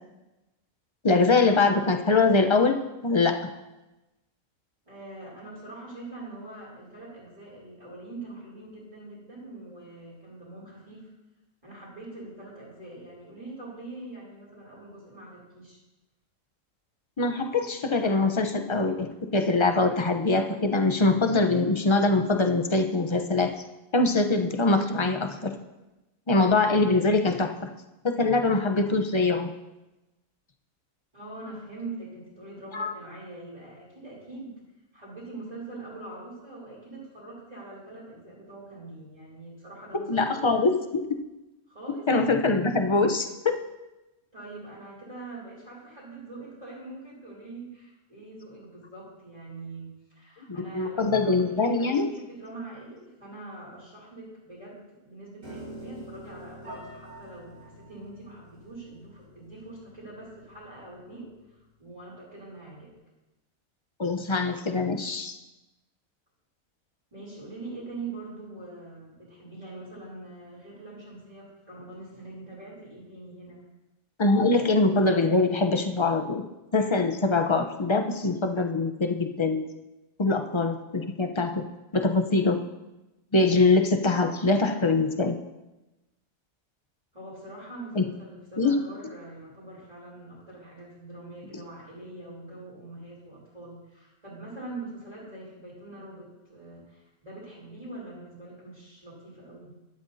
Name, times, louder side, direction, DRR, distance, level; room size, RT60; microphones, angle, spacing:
voice 1, 1.0-3.4 17.2-23.5 23.9-25.5 26.3-27.7 28.0-29.5 32.7-32.9 39.9-41.1 42.1-43.6 50.5-52.1 64.0-65.4 74.2-76.4 76.7-79.6 80.2-81.6 81.9-82.6 83.3-85.4 87.9-88.1 88.6-88.8, left 3 dB, 25° left, 5 dB, 0.7 m, -23 dB
voice 2, 4.9-11.1 11.6-15.8 31.1-34.5 34.9-40.5 41.7-42.1 44.3-63.0 67.1-73.6 87.1-99.7, right 2 dB, 25° right, -10 dB, 3.8 m, -43 dB
Piano, 55.4-61.6, right 1 dB, 90° right, 4.9 m, -47 dB
13.5 x 12.5 x 2.8 m, 1.0 s
omnidirectional pair, 1.4 m